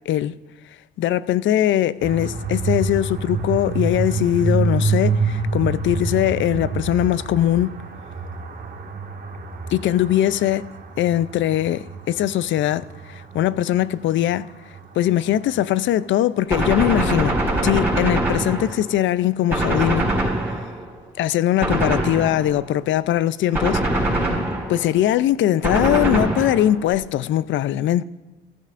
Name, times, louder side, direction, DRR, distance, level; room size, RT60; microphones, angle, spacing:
voice 1, 0.1-0.4 1.0-7.7 9.7-10.7 11.0-14.5 15.0-20.1 21.2-24.3 24.7-28.0, left 12 dB, 70° left, 0.5 m, -21 dB
sound 1, 2.0-15.9, right 4 dB, 50° right, 1.8 m, -28 dB
Gunshot gunfire, 16.5-19.0 19.5-20.9 21.6-22.6 23.5-24.9 25.6-26.9, right 1 dB, 10° right, 4.8 m, -23 dB
14.5 x 14.5 x 2.5 m
cardioid pair, 90°, 20 cm